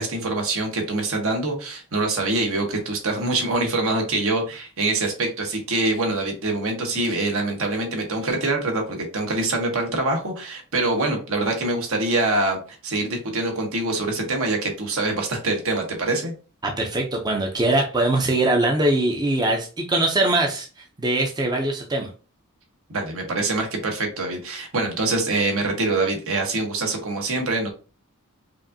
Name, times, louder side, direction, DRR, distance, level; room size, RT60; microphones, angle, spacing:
voice 1, 0.0-16.3 22.9-27.7, right 2 dB, 70° right, 2 dB, 1.2 m, -24 dB
voice 2, 16.6-20.7 21.0-22.1, right 2 dB, 20° right, 1 dB, 0.5 m, -22 dB
5.0 x 2.6 x 2.7 m, 0.34 s
head